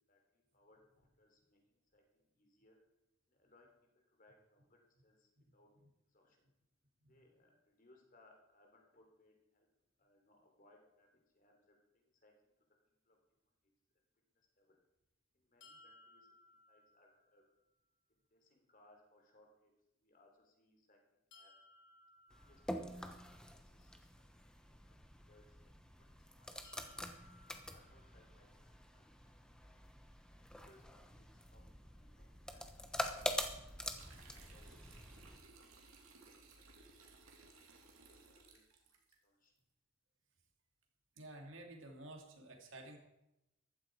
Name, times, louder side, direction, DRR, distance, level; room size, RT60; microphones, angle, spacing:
voice 1, 0.1-2.8 3.3-5.7 6.1-6.5 7.1-9.7 10.0-12.5 13.0-13.2 14.6-14.8 15.3-16.3 16.7-17.4 18.3-19.7 20.0-21.0 21.3-21.5 22.3-26.9 27.5-28.5 28.9-29.0 30.4-32.7 33.0-33.6 34.2-35.0 35.7-36.7 37.4-37.6 38.0-38.9 39.2-39.5, left 1 dB, 40° left, 2 dB, 3.4 m, -70 dB
sound 1, 15.6-17.6 21.3-23.4 26.6-28.7, left 2 dB, 55° left, 2.0 m, -64 dB
sound 2, 22.3-35.4, equal, 5° left, 1.0 m, -46 dB
sound 3, 33.9-39.2, right 3 dB, 85° right, 2.6 m, -61 dB
voice 2, 41.2-43.0, right 1 dB, 65° right, 3 dB, 2.6 m, -52 dB
15.0 x 12.5 x 4.8 m, 0.90 s
head